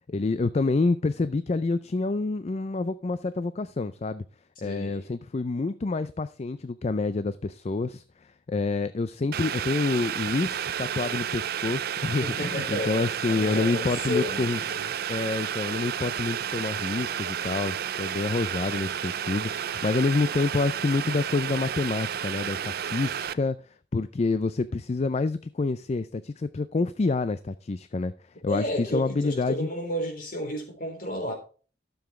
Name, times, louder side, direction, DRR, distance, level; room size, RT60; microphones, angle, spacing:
voice 1, 0.1-4.2 4.6-14.6 15.1-23.6 23.9-28.1 28.4-29.7, left 3 dB, 35° left, 0.4 m, -28 dB
voice 2, 4.6-5.1 12.2-14.9 28.5-31.3, left 1 dB, 50° left, 3.7 m, -32 dB
Boiling, 9.3-23.3, right 9 dB, 55° right, 0.5 m, -31 dB
12.5 x 7.1 x 3.6 m
head